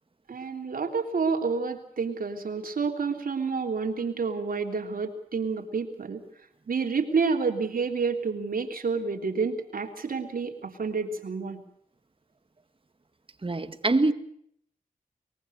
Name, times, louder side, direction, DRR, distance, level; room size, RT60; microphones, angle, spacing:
voice 1, 0.3-6.2 6.7-11.6, right 5 dB, 80° right, 3.4 m, -29 dB
voice 2, 13.4-14.1, right 2 dB, 40° right, 2.0 m, -24 dB
23.5 x 22.0 x 6.5 m
cardioid pair, 50°, 15 cm